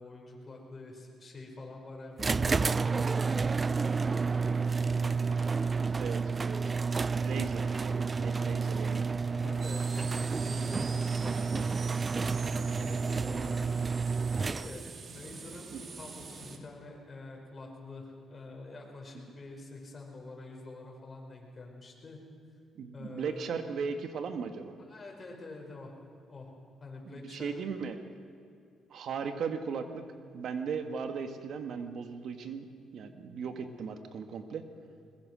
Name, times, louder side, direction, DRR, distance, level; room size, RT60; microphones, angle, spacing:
voice 1, 0.0-4.2 4.4-5.1 9.3-11.9 12.2-13.7 14.4-22.2 22.9-23.6 24.9-25.9 26.3-26.5 26.8-27.5, left 2 dB, 35° left, 0 dB, 5.5 m, -46 dB
sound 1, 2.2-15.0, right 4 dB, 30° right, 0.4 m, -30 dB
voice 2, 6.0-6.7 7.2-9.0 15.7-15.8 22.8-24.7 27.1-28.0 28.9-30.1 30.3-32.7 32.9-34.7, right 6 dB, 65° right, 7 dB, 1.8 m, -37 dB
sound 2, 9.6-16.6, right 4 dB, 45° right, 2.2 m, -45 dB
21.5 x 21.0 x 6.4 m, 2.4 s
cardioid pair, 90°, 0 cm